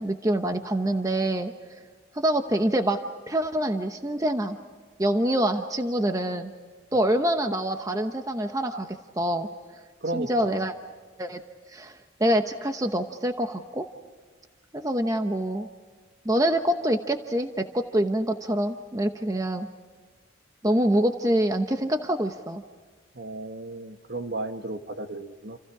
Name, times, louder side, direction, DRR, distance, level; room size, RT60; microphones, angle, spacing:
voice 1, 0.0-1.5 2.1-3.0 3.3-4.6 5.0-6.5 6.9-8.9 9.1-9.5 10.1-10.7 11.2-11.4 11.7-13.9 14.7-15.7 16.2-19.7 20.6-22.6, right 1 dB, 15° right, 6 dB, 0.9 m, -25 dB
voice 2, 10.0-10.6 23.1-25.6, right 2 dB, 55° right, 7 dB, 1.6 m, -34 dB
29.0 x 28.5 x 4.9 m, 1.5 s
head